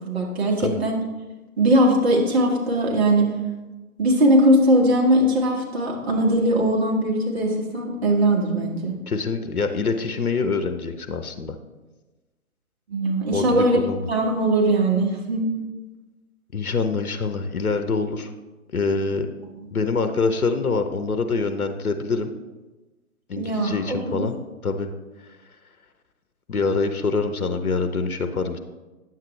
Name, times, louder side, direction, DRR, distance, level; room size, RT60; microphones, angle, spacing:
voice 1, 0.0-1.0 1.6-3.3 4.0-8.9 12.9-13.8 14.1-15.5 23.4-24.2, right 1 dB, 45° right, -1 dB, 1.7 m, -20 dB
voice 2, 9.1-11.6 13.3-14.1 16.5-18.3 18.7-19.3 19.7-22.3 23.3-24.4 24.6-24.9 26.5-28.6, left 4 dB, 75° left, 8 dB, 0.9 m, -25 dB
9.2 x 7.5 x 3.2 m, 1.2 s
figure-of-eight pair, 135°, 44 cm